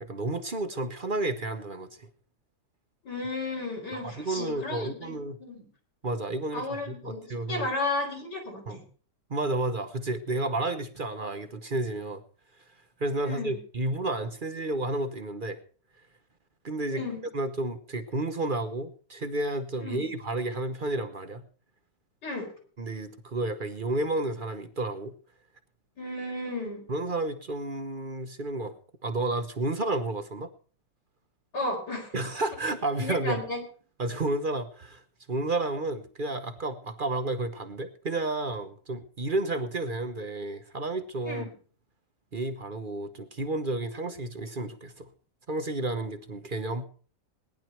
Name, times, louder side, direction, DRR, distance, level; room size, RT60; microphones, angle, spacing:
voice 1, 0.0-2.1 3.9-5.4 6.0-7.7 8.7-8.8 9.3-12.2 13.0-15.6 16.6-17.0 17.3-21.4 22.8-25.1 26.9-28.7 29.0-30.5 32.1-33.4 34.0-35.0 35.3-41.5 42.3-45.1 45.5-46.8, right 2 dB, 35° right, 8 dB, 0.9 m, -31 dB
voice 2, 3.0-5.7 6.5-8.8 13.2-13.6 16.9-17.2 19.8-20.0 22.2-22.5 26.0-26.8 31.5-32.1 33.0-33.6 41.3-41.5, left 2 dB, 65° left, 1 dB, 5.0 m, -34 dB
18.5 x 10.5 x 4.5 m, 0.42 s
omnidirectional pair, 2.0 m